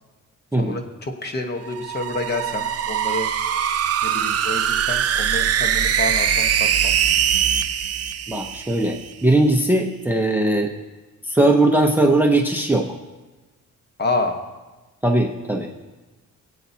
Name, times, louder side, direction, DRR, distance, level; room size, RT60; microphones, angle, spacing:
voice 1, 0.6-3.3 4.0-7.0 14.0-14.4, left 2 dB, 35° left, 4 dB, 1.1 m, -28 dB
sound 1, 1.6-9.1, right 9 dB, 50° right, 0.6 m, -22 dB
voice 2, 8.3-10.7 11.3-12.9 15.0-15.8, right 2 dB, 5° right, 2 dB, 0.6 m, -19 dB
24.0 x 8.4 x 2.7 m, 1.2 s
wide cardioid pair, 155°, 31 cm